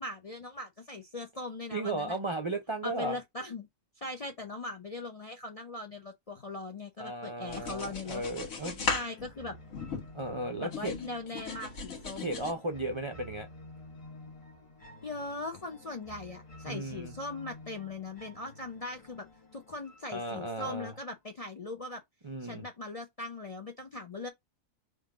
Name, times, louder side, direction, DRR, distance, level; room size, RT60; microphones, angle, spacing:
voice 1, 0.0-2.2 2.8-3.7 4.0-8.2 8.8-9.6 10.6-12.3 15.0-19.3 19.5-22.0 22.4-24.3, left 2 dB, 45° left, 0.4 m, -40 dB
voice 2, 1.7-3.2 7.0-8.9 10.1-10.9 12.2-13.5 16.7-17.1 20.1-20.9 22.2-22.6, right 2 dB, 50° right, 0.3 m, -35 dB
sound 1, 7.5-10.3 10.7-12.5, left 4 dB, 75° left, 1.6 m, -37 dB
sound 2, 8.1-21.1, left 1 dB, 25° left, 1.2 m, -51 dB
3.7 x 2.6 x 4.7 m
omnidirectional pair, 1.4 m